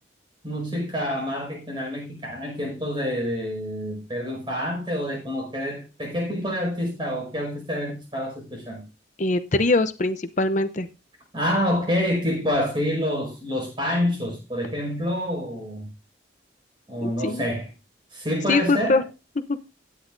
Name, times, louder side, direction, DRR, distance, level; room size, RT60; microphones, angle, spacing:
voice 1, 0.4-8.8 11.3-15.9 16.9-17.7 18.1-19.0, equal, 25° right, 5.5 m, -27 dB
voice 2, 9.2-10.9 17.0-17.5 18.5-19.0 19.5-19.6, left 2 dB, 40° left, 0.7 m, -22 dB
17.0 x 10.0 x 2.6 m
head